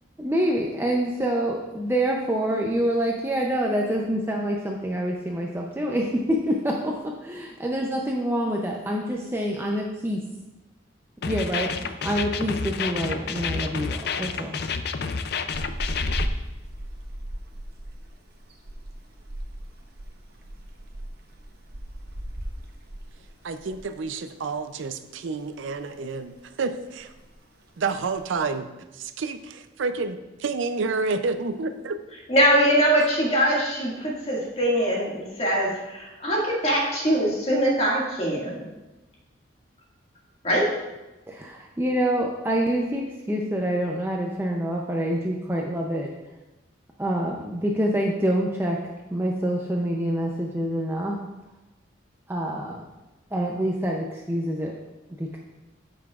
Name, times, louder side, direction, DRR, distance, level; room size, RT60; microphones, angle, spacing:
voice 1, 0.2-10.2 11.2-14.6 41.3-46.1 47.0-48.8 49.1-51.2 52.3-52.8 53.3-54.7 55.2-55.4, right 1 dB, 10° right, -1 dB, 0.5 m, -26 dB
sound 1, 11.2-16.3, left 5 dB, 55° left, 0.4 m, -29 dB
sound 2, 15.5-24.1 24.3-24.5 24.9-25.8 26.1-26.5 26.7-26.8 27.0-27.4 28.0-28.5, equal, 50° right, 1.0 m, -36 dB
voice 2, 23.4-27.1 27.8-28.7 28.9-32.0, right 4 dB, 80° right, 10 dB, 0.5 m, -29 dB
voice 3, 32.3-38.6 40.4-40.7, equal, 30° left, -4 dB, 2.0 m, -22 dB
13.5 x 5.8 x 2.4 m, 1.0 s
head